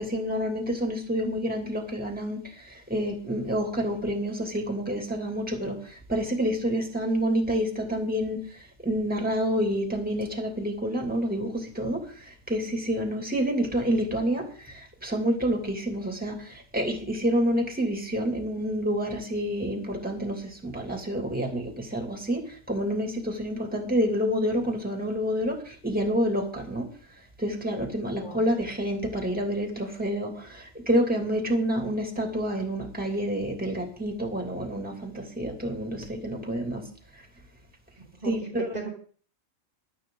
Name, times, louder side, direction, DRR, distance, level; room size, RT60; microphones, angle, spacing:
voice 1, 0.0-2.4 2.9-5.8 6.1-8.4 8.8-12.0 12.5-14.5 15.0-16.3 16.7-25.6 25.8-26.9 27.4-30.3 30.9-36.8 38.3-38.7, equal, 5° right, 3 dB, 2.9 m, -28 dB
voice 2, 38.0-38.9, right 3 dB, 30° right, -1 dB, 2.6 m, -37 dB
13.5 x 12.0 x 4.0 m, 0.43 s
omnidirectional pair, 1.4 m